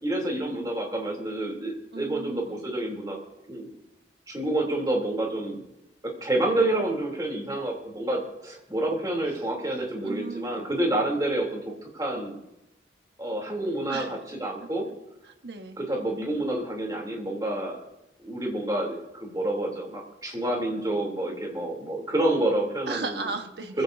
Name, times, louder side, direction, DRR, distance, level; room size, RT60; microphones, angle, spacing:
voice 1, 0.0-3.2 3.5-3.7 4.3-5.6 6.0-12.3 13.2-14.9 15.8-17.8 18.2-23.2 23.7-23.8, right 1 dB, 20° right, 0 dB, 3.0 m, -28 dB
voice 2, 1.9-2.6 10.0-10.7 13.9-14.2 14.6-14.7 15.2-15.8 22.9-23.8, right 3 dB, 65° right, 5 dB, 1.3 m, -36 dB
23.0 x 15.5 x 2.7 m, 0.89 s
head